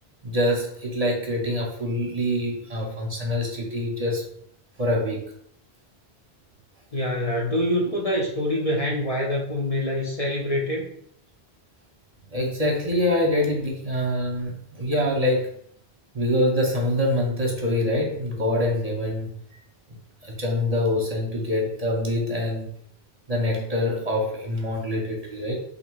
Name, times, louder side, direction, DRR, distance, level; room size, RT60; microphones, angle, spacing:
voice 1, 0.2-4.2 4.8-5.3 12.3-15.5 16.1-19.3 20.2-22.7 23.3-25.6, left 1 dB, 40° right, -1 dB, 0.8 m, -25 dB
voice 2, 6.9-10.9, left 1 dB, 40° left, -2 dB, 0.7 m, -25 dB
3.5 x 2.7 x 4.5 m, 0.65 s
omnidirectional pair, 1.1 m